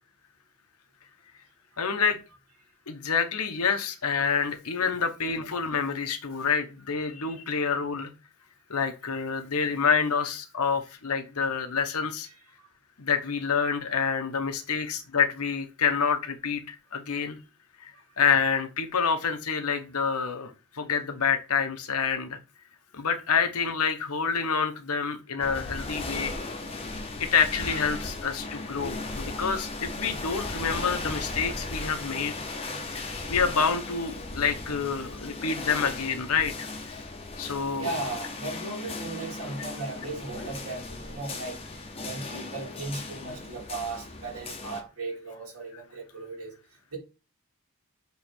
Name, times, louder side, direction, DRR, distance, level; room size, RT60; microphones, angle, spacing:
voice 1, 1.8-2.2 2.9-8.1 8.7-12.3 13.0-17.4 17.8-17.9 18.2-22.4 22.9-26.4 27.2-32.3 32.9-36.7 37.4-37.9, left 6 dB, 80° left, 1.0 m, -27 dB
sound 1, 25.4-44.8, left 2 dB, 25° left, 0.8 m, -37 dB
voice 2, 37.8-41.6 42.0-46.5 46.9-47.0, right 3 dB, 75° right, 2.6 m, -36 dB
7.0 x 3.2 x 4.5 m
head